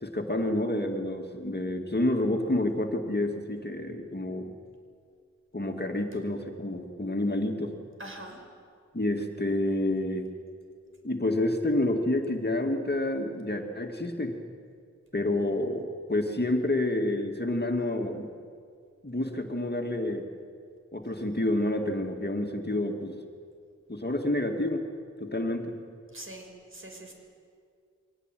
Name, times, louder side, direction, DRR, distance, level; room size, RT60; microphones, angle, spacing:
voice 1, 0.0-4.5 5.5-7.7 8.9-10.3 11.0-14.4 15.1-18.3 19.0-20.3 20.9-23.2 23.9-24.9 25.2-25.8, left 1 dB, 35° left, 3 dB, 2.3 m, -29 dB
voice 2, 8.0-8.4 26.1-27.1, right 1 dB, 45° right, 2 dB, 5.8 m, -43 dB
23.5 x 18.0 x 9.3 m, 2.2 s
cardioid pair, 40°, 29 cm